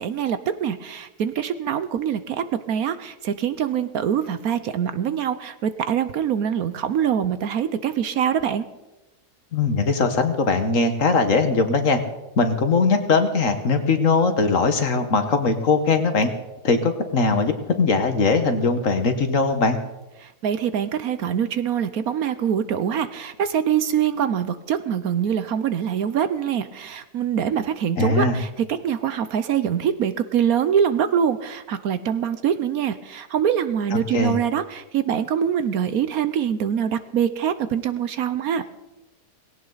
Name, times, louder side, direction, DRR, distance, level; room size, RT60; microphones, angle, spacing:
voice 1, 0.0-8.6 20.2-38.6, right 8 dB, 65° right, 12 dB, 1.1 m, -24 dB
voice 2, 9.5-12.0 12.4-16.3 16.6-19.8 28.0-28.4 33.9-34.4, left 4 dB, 55° left, 7 dB, 1.6 m, -20 dB
18.5 x 17.0 x 4.0 m, 1.0 s
omnidirectional pair, 1.8 m